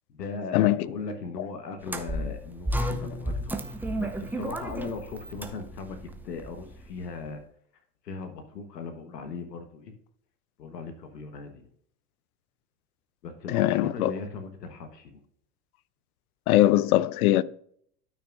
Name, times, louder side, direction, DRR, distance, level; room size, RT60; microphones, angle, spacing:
voice 1, 0.1-7.4 8.0-9.9 10.6-11.7 13.2-15.2, left 4 dB, 85° left, 1.4 m, -38 dB
sound 1, 1.8-7.1, right 1 dB, 5° right, 0.7 m, -33 dB
voice 2, 13.5-14.1 16.5-17.4, left 15 dB, 65° left, 0.7 m, -21 dB
13.0 x 6.0 x 2.5 m
hypercardioid pair, 90°, 47 cm